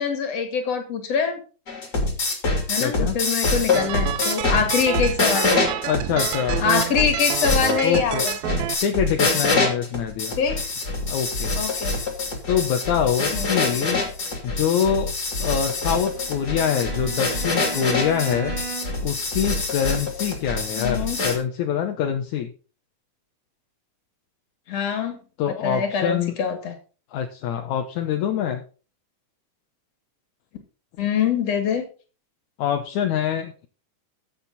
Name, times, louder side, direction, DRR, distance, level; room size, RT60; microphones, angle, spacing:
voice 1, 0.0-1.4 2.7-5.7 6.6-8.6 10.4-10.6 11.6-11.9 13.3-13.5 20.8-21.2 24.7-25.2 25.5-26.7 31.0-31.9, left 6 dB, 55° left, 6 dB, 3.3 m, -24 dB
sound 1, 1.7-21.4, left 3 dB, 30° left, 3.1 m, -25 dB
voice 2, 2.8-3.2 5.8-6.6 7.8-8.3 8.8-10.3 11.1-11.5 12.5-14.1 14.4-15.1 15.4-18.6 19.0-22.5 25.4-26.4 27.1-28.6 32.6-33.7, left 8 dB, 75° left, 4 dB, 2.3 m, -25 dB
sound 2, 3.7-8.8, right 15 dB, 75° right, 1.7 m, -29 dB
Bowed string instrument, 16.0-19.1, right 6 dB, 50° right, 1.8 m, -36 dB
14.0 x 7.8 x 4.1 m, 0.36 s
omnidirectional pair, 3.6 m